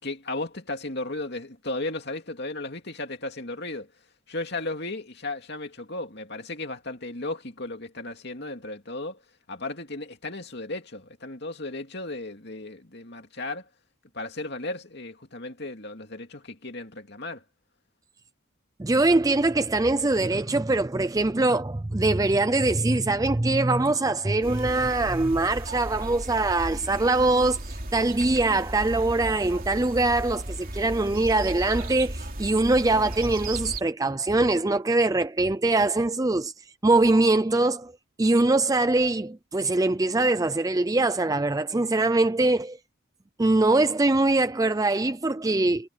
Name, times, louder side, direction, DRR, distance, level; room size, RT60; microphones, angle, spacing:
voice 1, 0.0-3.9 4.3-9.2 9.5-13.7 14.1-17.4, left 2 dB, 50° left, 2.7 m, -35 dB
voice 2, 18.8-37.9 38.2-42.8 43.4-45.9, right 2 dB, 15° right, 0.4 m, -23 dB
sound 1, 24.4-33.8, right 1 dB, 40° right, 3.3 m, -35 dB
head